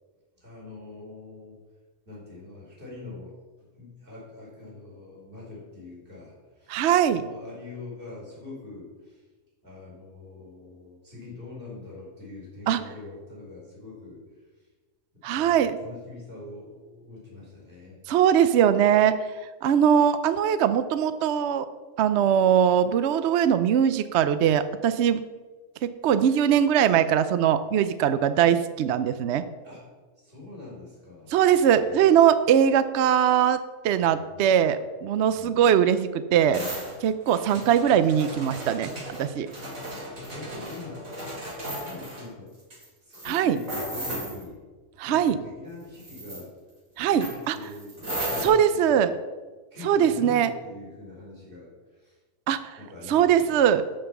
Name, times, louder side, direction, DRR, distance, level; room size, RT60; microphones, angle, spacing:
voice 1, 0.4-1.6 2.1-3.3 3.8-6.8 7.2-9.2 9.6-14.2 15.3-18.0 29.6-29.8 30.2-32.2 34.0-34.5 35.3-35.6 40.1-41.1 41.4-42.5 43.0-44.6 45.0-46.5 47.1-49.1 49.7-52.2 52.8-53.6, left 3 dB, 40° right, -5 dB, 4.4 m, -43 dB
voice 2, 6.7-7.2 12.7-12.8 15.2-15.8 18.1-19.2 19.6-21.7 22.0-25.2 25.8-29.4 31.3-36.6 37.0-38.9 39.2-39.5 43.2-43.6 45.0-45.4 47.0-47.5 48.4-49.1 49.8-50.5 52.5-52.8 53.1-53.8, right 9 dB, 65° right, 12 dB, 0.8 m, -21 dB
sound 1, 36.5-42.3 42.7-42.9 43.1-44.4 45.9-46.4 47.2-48.5, right 1 dB, 80° right, 3.9 m, -35 dB
12.0 x 5.6 x 7.0 m, 1.3 s
omnidirectional pair, 1.4 m